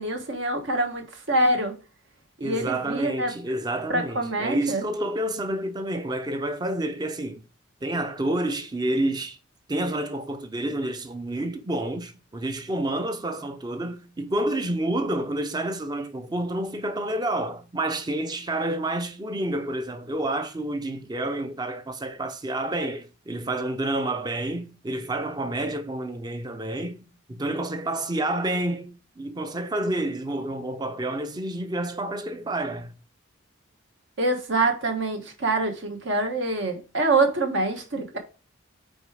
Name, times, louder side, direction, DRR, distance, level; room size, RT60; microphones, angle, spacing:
voice 1, 0.0-1.7 2.4-3.3 3.9-4.9 34.2-38.2, right 2 dB, 65° right, 1.2 m, -25 dB
voice 2, 2.4-7.4 7.8-9.4 9.7-32.9, right 1 dB, 20° right, 0.5 m, -29 dB
5.3 x 4.5 x 4.8 m
head